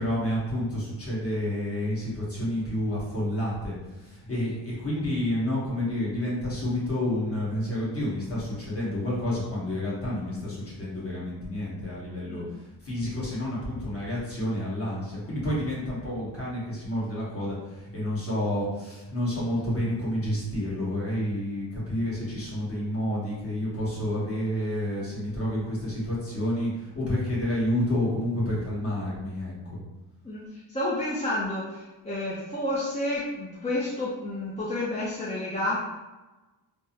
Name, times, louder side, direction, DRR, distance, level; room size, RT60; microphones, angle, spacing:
voice 1, 0.0-29.8, left 1 dB, 35° left, -7 dB, 1.3 m, -29 dB
voice 2, 30.7-35.8, left 1 dB, 15° left, -8 dB, 0.5 m, -30 dB
3.4 x 2.1 x 2.7 m, 1.1 s
cardioid pair, 95°, 42 cm